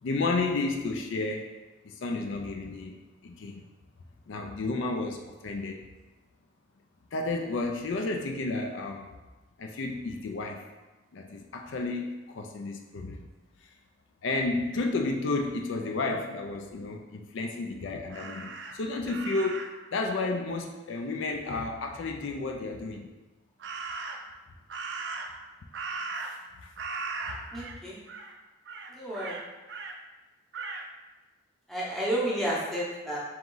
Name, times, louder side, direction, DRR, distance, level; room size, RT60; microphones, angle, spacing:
voice 1, 0.0-1.5 1.8-3.7 4.3-5.9 7.1-9.1 9.6-10.7 11.1-13.3 13.6-13.7 14.2-19.7 19.9-23.1 25.9-26.7 27.3-27.4, left 3 dB, 70° left, 2 dB, 0.4 m, -32 dB
Crow, 18.1-19.9 23.6-24.4 24.7-26.5 26.8-27.8 28.1-28.3 28.7-30.0 30.5-30.9, right 4 dB, 55° right, 0.3 m, -38 dB
voice 2, 27.5-28.0 29.0-29.4 31.7-33.2, right 1 dB, ahead, -6 dB, 0.7 m, -31 dB
3.5 x 3.0 x 3.8 m, 1.2 s
head